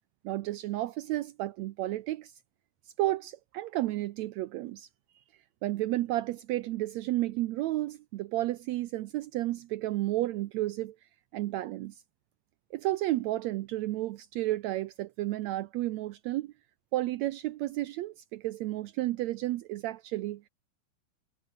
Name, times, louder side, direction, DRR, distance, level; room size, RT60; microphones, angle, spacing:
voice 1, 0.2-2.3 3.0-4.9 5.6-10.9 11.3-12.0 12.7-16.5 16.9-20.5, right 16 dB, 85° right, 1.6 m, -32 dB
omnidirectional pair, 3.9 m